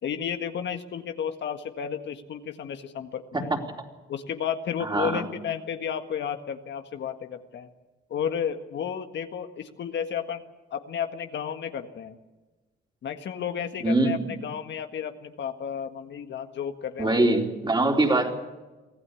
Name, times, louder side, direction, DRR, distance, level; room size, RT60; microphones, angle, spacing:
voice 1, 0.0-3.5 4.1-7.7 8.1-10.4 10.7-12.2 13.0-17.2, left 8 dB, 65° left, 7 dB, 1.7 m, -32 dB
voice 2, 4.8-5.3 13.8-14.3 17.0-18.3, right 2 dB, 20° right, 2 dB, 4.0 m, -23 dB
24.5 x 15.0 x 8.5 m, 1.2 s
cardioid pair, 90°, 20 cm